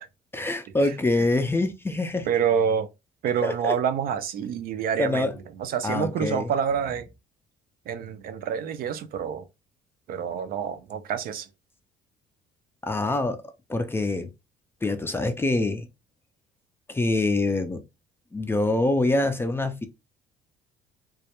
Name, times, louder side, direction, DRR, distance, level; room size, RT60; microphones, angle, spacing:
voice 1, 0.3-2.3 3.4-3.7 5.0-5.3 5.8-6.5 12.8-13.4 13.7-14.3 14.8-15.9 16.9-17.8 18.3-19.9, left 2 dB, 15° left, 0.3 m, -25 dB
voice 2, 2.3-2.9 3.2-5.3 5.6-7.1 7.9-9.5 10.1-11.5, right 7 dB, 60° right, 0.4 m, -27 dB
2.3 x 2.0 x 2.8 m
cardioid pair, 110°, 17 cm